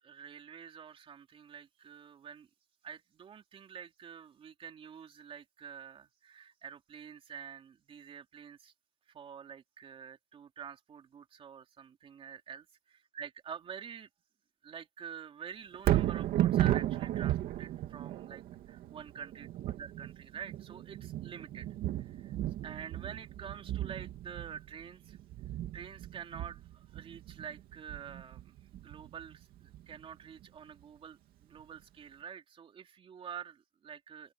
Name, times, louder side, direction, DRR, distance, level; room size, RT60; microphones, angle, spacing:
voice 1, 0.0-2.5 2.8-8.7 9.1-12.7 13.1-14.1 14.6-22.3 22.6-25.2 25.7-34.3, right 7 dB, 30° right, 3.3 m, -47 dB
Thunder, 15.7-30.0 30.4-30.5, right 13 dB, 50° right, 2.7 m, -34 dB
open air
cardioid pair, 165°, 19 cm